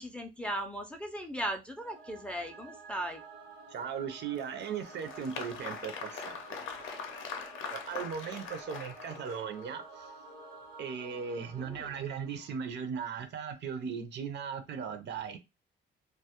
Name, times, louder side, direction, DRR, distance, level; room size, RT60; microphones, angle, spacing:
voice 1, 0.0-3.2 11.5-12.0, right 1 dB, 5° left, 0.3 m, -38 dB
Singing / Musical instrument, 1.8-13.1, right 3 dB, 80° right, 0.9 m, -51 dB
voice 2, 3.7-6.7 7.6-10.1 10.8-15.4, right 7 dB, 60° right, 0.5 m, -38 dB
Applause, 4.4-9.7, left 5 dB, 80° left, 0.5 m, -42 dB
2.2 x 2.0 x 2.7 m
cardioid pair, 90°, 20 cm